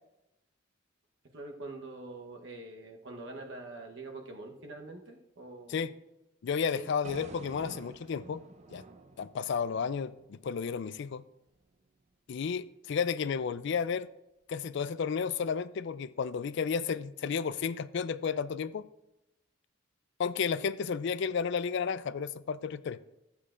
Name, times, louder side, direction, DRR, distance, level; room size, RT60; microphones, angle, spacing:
voice 1, 1.3-5.9 6.7-6.9, right 2 dB, 65° right, 1.0 m, -44 dB
voice 2, 6.4-8.4 8.7-8.8 9.2-11.2 12.3-14.1 14.5-18.9 20.2-23.0, left 6 dB, 60° left, 0.4 m, -32 dB
sound 1, 7.0-11.2, right 3 dB, 35° right, 0.5 m, -50 dB
12.5 x 8.2 x 2.5 m
head